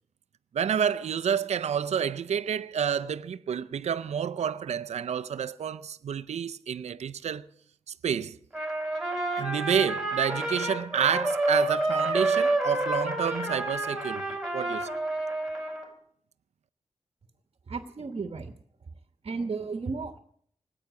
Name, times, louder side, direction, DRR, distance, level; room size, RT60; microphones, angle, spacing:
voice 1, 0.5-7.4 8.0-8.4 9.4-14.9, right 8 dB, 85° right, 0.5 m, -29 dB
Trumpet, 8.5-15.9, right 2 dB, 5° right, 4.1 m, -29 dB
voice 2, 17.7-18.5 19.2-20.2, right 4 dB, 55° right, 1.2 m, -34 dB
19.0 x 8.7 x 8.1 m
wide cardioid pair, 105°, 11 cm